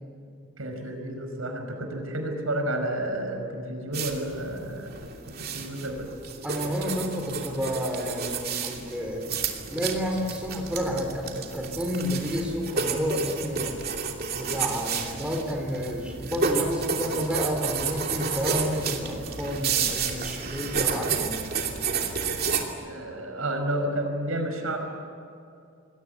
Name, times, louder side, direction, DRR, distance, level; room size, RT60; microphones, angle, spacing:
voice 1, 0.6-4.9 5.5-6.1 22.8-24.8, right 1 dB, 80° right, 4 dB, 5.4 m, -31 dB
sound 1, 3.9-22.6, right 5 dB, 45° right, 2.8 m, -31 dB
voice 2, 6.4-13.8 14.3-21.4, equal, 5° right, 1 dB, 3.5 m, -30 dB
28.0 x 22.0 x 8.2 m, 2.5 s
head